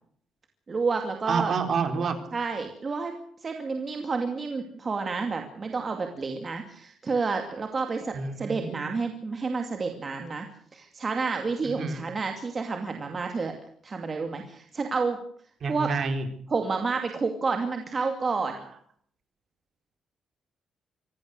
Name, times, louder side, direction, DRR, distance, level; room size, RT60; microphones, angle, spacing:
voice 1, 0.7-1.5 2.3-10.5 10.7-13.5 13.8-15.2 15.7-15.9 16.5-18.6, right 4 dB, 25° right, 5 dB, 2.4 m, -30 dB
voice 2, 1.3-2.2 8.1-8.9 11.6-12.0 15.6-16.2, right 5 dB, 45° right, 7 dB, 4.1 m, -28 dB
25.5 x 18.0 x 6.7 m, 0.63 s
cardioid pair, 170°, 0 cm